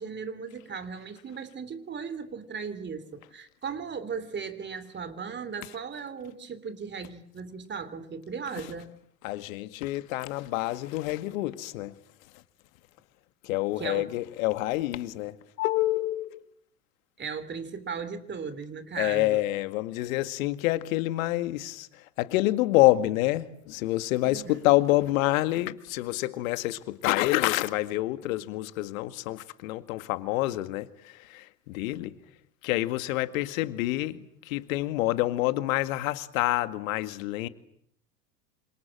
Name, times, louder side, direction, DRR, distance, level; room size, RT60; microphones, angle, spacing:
voice 1, 0.0-8.9 13.8-14.1 17.2-19.4 24.2-24.6, right 6 dB, 25° right, 3.2 m, -37 dB
voice 2, 9.2-12.0 12.3-12.4 13.4-16.5 19.0-32.2 32.6-37.5, left 17 dB, 60° left, 2.0 m, -27 dB
28.0 x 26.5 x 7.7 m
hypercardioid pair, 90°, 47 cm